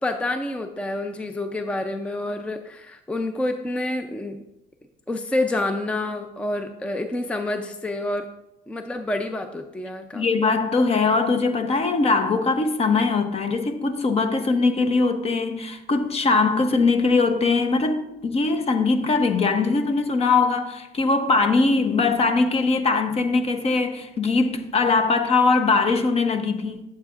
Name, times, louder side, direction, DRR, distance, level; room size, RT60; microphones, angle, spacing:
voice 1, 0.0-4.4 5.1-8.3 8.7-10.2, left 2 dB, 5° left, 0.4 m, -28 dB
voice 2, 10.1-26.8, left 3 dB, 35° left, 0.8 m, -21 dB
11.5 x 7.3 x 2.5 m
cardioid pair, 110°, 17 cm